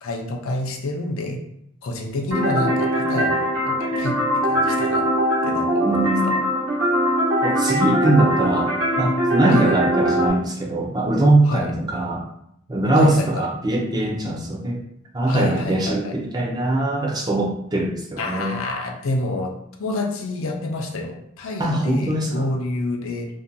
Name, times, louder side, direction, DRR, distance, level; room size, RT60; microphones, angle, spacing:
voice 1, 0.0-1.4 1.8-4.2 4.4-5.1 5.4-6.3 9.5-9.8 11.4-11.7 12.9-13.5 15.3-16.1 18.2-19.5 19.8-23.3, left 2 dB, 70° left, 2 dB, 0.4 m, -28 dB
sound 1, 2.3-10.3, right 1 dB, 85° right, 0.9 m, -21 dB
voice 2, 5.8-6.3 7.4-12.3 12.7-14.8 15.1-18.5 21.6-22.5, right 1 dB, 20° right, -1 dB, 0.4 m, -21 dB
2.5 x 2.1 x 2.5 m, 0.74 s
head